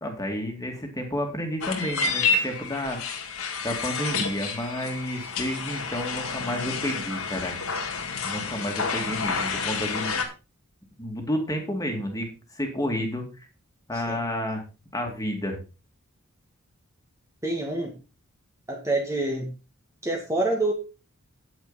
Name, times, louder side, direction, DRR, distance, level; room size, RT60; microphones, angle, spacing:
voice 1, 0.0-3.0 3.6-7.6 8.2-10.2 11.0-13.5 13.9-14.6 14.9-15.6, equal, 15° left, 3 dB, 2.2 m, -30 dB
sound 1, 1.6-10.2, left 4 dB, 80° left, 1.9 m, -29 dB
voice 2, 17.4-17.9 18.7-19.5 20.0-20.7, right 2 dB, 15° right, 1 dB, 1.6 m, -27 dB
9.4 x 8.8 x 4.0 m, 0.30 s
head